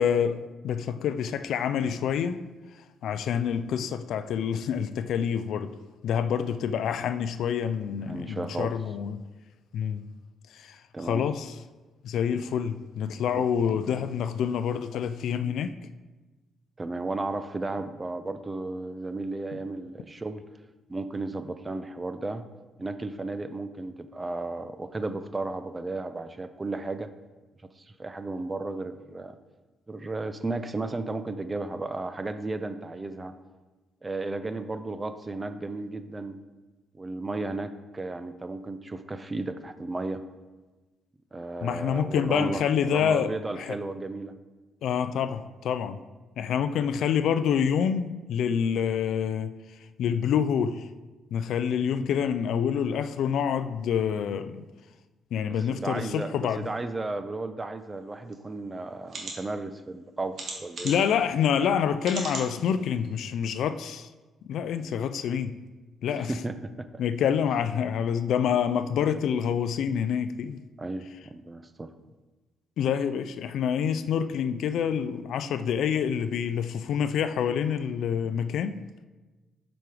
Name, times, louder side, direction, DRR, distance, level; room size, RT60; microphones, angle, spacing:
voice 1, 0.0-2.5 3.0-5.7 6.0-9.2 9.7-10.1 10.5-11.5 12.0-15.8 19.5-19.6 41.6-43.8 44.8-46.0 46.4-49.5 50.0-50.9 51.3-54.6 55.3-56.7 60.8-64.1 64.4-65.6 66.0-66.3 67.0-70.6 72.8-78.8, left 8 dB, 75° left, 0.4 m, -27 dB
voice 2, 8.1-8.7 10.9-11.2 13.3-13.4 16.8-20.4 20.9-22.4 22.8-27.1 27.8-29.4 29.9-33.3 34.0-36.4 36.9-40.2 41.3-42.6 42.9-44.4 55.7-60.9 64.8-65.0 66.2-66.9 70.8-71.9, right 2 dB, 20° right, 0.6 m, -34 dB
sound 1, 58.3-58.4 59.1-59.3 60.3-61.1 62.0-62.5 63.0-63.1 63.5-63.6, right 3 dB, 55° right, 1.8 m, -36 dB
7.5 x 5.2 x 4.8 m
cardioid pair, 90°, 0 cm